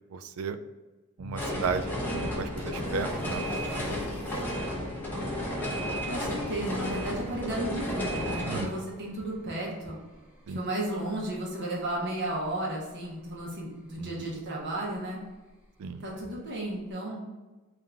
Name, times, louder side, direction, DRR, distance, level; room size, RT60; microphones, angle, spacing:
voice 1, 0.1-0.6 1.2-3.5 8.5-8.7 10.5-10.6 14.0-14.3 15.8-16.0, right 5 dB, 75° right, 11 dB, 0.3 m, -34 dB
sound 1, 1.2-16.9, equal, 5° right, 1.2 m, -51 dB
sound 2, 1.4-8.7, equal, 10° left, 0.8 m, -32 dB
Water / Splash splatter, 2.6-4.7, left 1 dB, 85° left, 0.8 m, -51 dB
voice 2, 6.1-10.0 10.5-15.2 16.0-17.3, right 1 dB, 55° right, -3 dB, 0.9 m, -34 dB
3.6 x 2.5 x 4.3 m, 1.2 s
head